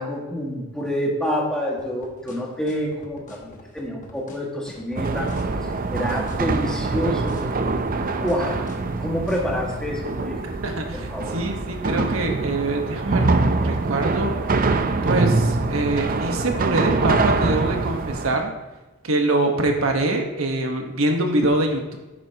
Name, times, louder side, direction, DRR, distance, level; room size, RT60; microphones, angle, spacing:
voice 1, 0.0-5.3 5.6-7.6 8.2-8.7 9.0-10.4 10.9-11.4, equal, 5° left, -3 dB, 1.9 m, -27 dB
sound 1, 1.8-9.7, left 2 dB, 40° left, 1.1 m, -44 dB
sound 2, 5.0-18.4, right 3 dB, 40° right, 0.6 m, -24 dB
voice 2, 10.6-13.3 13.6-14.3 15.0-18.5 19.0-22.0, right 2 dB, 75° right, 3 dB, 1.4 m, -24 dB
10.0 x 8.8 x 3.0 m, 1.1 s
head